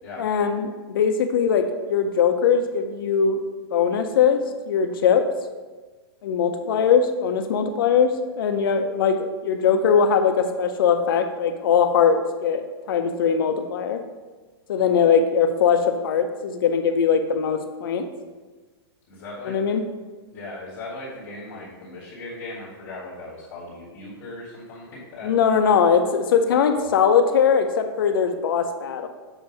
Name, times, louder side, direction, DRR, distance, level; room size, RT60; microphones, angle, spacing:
voice 1, 0.2-3.4 3.7-5.3 6.2-14.0 14.7-18.1 19.4-19.8 25.2-29.1, left 6 dB, 55° left, 7 dB, 0.6 m, -21 dB
voice 2, 19.1-19.6 20.3-25.7 26.7-26.9, left 2 dB, 30° left, -10 dB, 1.8 m, -38 dB
7.3 x 2.7 x 5.1 m, 1.3 s
hypercardioid pair, 170°, 14 cm